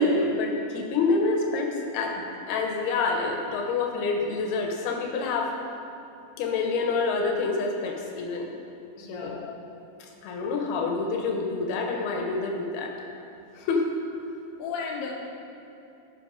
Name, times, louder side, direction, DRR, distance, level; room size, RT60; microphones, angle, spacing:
voice 1, 0.0-5.5 6.4-8.5 9.0-9.5 10.2-12.9 13.6-13.8, left 3 dB, 90° left, 2 dB, 2.8 m, -27 dB
voice 2, 8.9-9.5 14.6-15.1, left 5 dB, 70° left, -1 dB, 2.4 m, -34 dB
11.0 x 5.5 x 5.0 m, 2.9 s
omnidirectional pair, 4.4 m